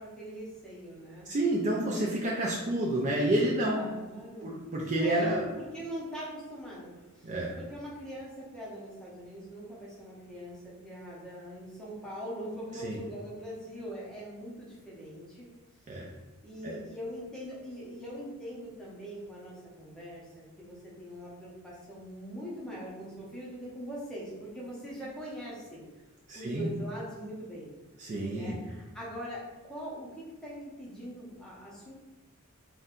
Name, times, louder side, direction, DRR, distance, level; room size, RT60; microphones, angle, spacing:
voice 1, 0.0-1.3 3.7-4.6 4.9-15.5 16.4-25.8 26.3-27.7 28.3-31.9, equal, 5° left, -6 dB, 0.6 m, -42 dB
voice 2, 1.3-3.9 4.4-5.5 7.2-7.6 12.8-13.0 15.9-16.1 16.6-16.8 26.3-26.7 28.0-28.6, right 1 dB, 35° right, -3 dB, 0.3 m, -29 dB
2.6 x 2.2 x 3.6 m, 1.2 s
head